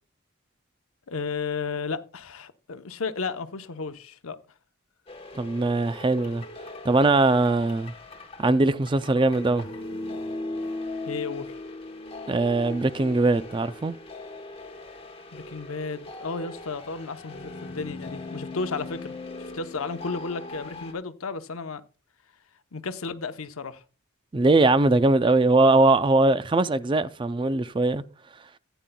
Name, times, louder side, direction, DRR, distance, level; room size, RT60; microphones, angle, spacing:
voice 1, 1.1-4.4 11.1-11.6 15.3-21.8 22.7-23.8, left 4 dB, 90° left, 0.8 m, -33 dB
sound 1, 5.1-20.9, left 2 dB, 25° left, 1.0 m, -39 dB
voice 2, 5.3-6.4 6.8-7.9 8.4-9.7 12.3-14.0 24.3-28.0, right 2 dB, 25° right, 0.4 m, -21 dB
15.0 x 9.1 x 2.2 m
head